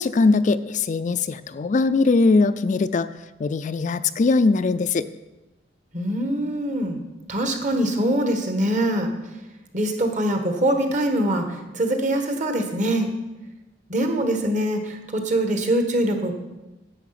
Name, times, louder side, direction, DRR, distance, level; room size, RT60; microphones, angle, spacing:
voice 1, 0.0-3.1 3.4-5.1, left 3 dB, 45° left, 12 dB, 0.4 m, -20 dB
voice 2, 5.9-7.0 7.3-9.1 9.7-13.1 13.9-16.3, right 1 dB, 45° right, 5 dB, 1.4 m, -23 dB
10.5 x 7.8 x 5.8 m, 1.0 s
head